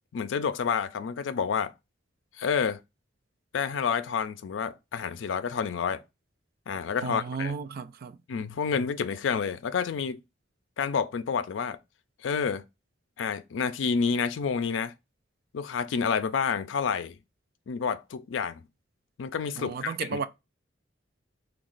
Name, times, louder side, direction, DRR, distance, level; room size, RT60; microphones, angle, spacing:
voice 1, 0.1-1.7 2.4-2.8 3.5-6.0 6.7-7.5 8.3-10.2 10.8-11.8 12.2-12.6 13.2-14.9 15.5-17.2 17.7-18.6 19.2-20.2, left 6 dB, 85° left, 0.4 m, -29 dB
voice 2, 7.0-8.2 19.6-20.3, right 5 dB, 55° right, 0.4 m, -33 dB
3.0 x 2.3 x 3.8 m
head